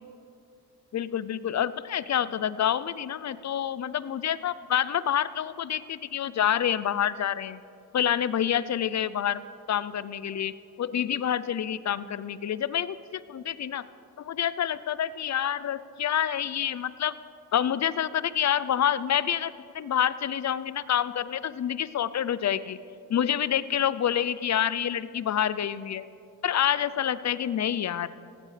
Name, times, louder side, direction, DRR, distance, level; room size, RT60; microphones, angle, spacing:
voice 1, 0.9-7.6 7.9-10.5 10.8-13.8 14.2-17.2 17.5-22.8 23.1-26.1 26.4-28.1, left 9 dB, 40° left, 16 dB, 0.6 m, -27 dB
17.0 x 16.0 x 3.4 m, 2.6 s
supercardioid pair, 60°, 42 cm